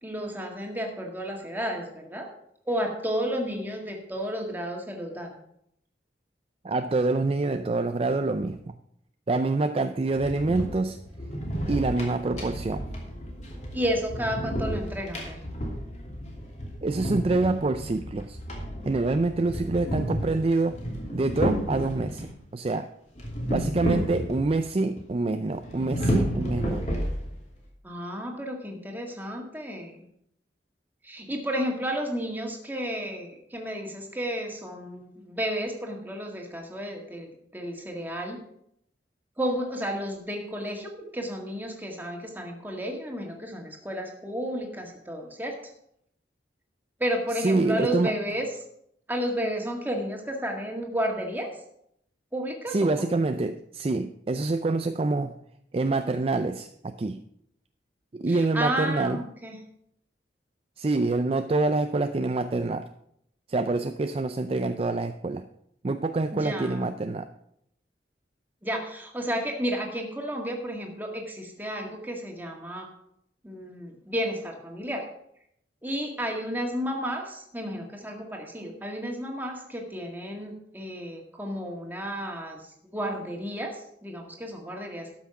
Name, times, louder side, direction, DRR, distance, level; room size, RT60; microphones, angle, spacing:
voice 1, 0.0-2.3 2.7-5.4 13.7-15.4 27.8-30.0 31.0-38.4 39.4-45.6 47.0-48.5 49.1-51.5 52.3-53.1 58.3-59.6 66.3-66.8 68.6-72.9 73.4-75.0 75.8-82.7 82.9-85.1, equal, 10° right, 1 dB, 1.9 m, -32 dB
voice 2, 6.6-8.8 9.3-11.0 11.7-12.8 16.8-18.4 18.8-20.8 21.1-22.9 23.5-26.8 47.4-48.1 52.7-55.3 55.7-57.2 58.1-59.2 60.8-62.9 63.5-65.4 65.8-67.3, right 3 dB, 35° right, 8 dB, 0.4 m, -26 dB
sound 1, 10.1-22.3 23.2-24.7 25.0-25.1 25.6-27.5, equal, 40° left, 2.7 m, -32 dB
12.5 x 6.0 x 5.9 m, 0.73 s
head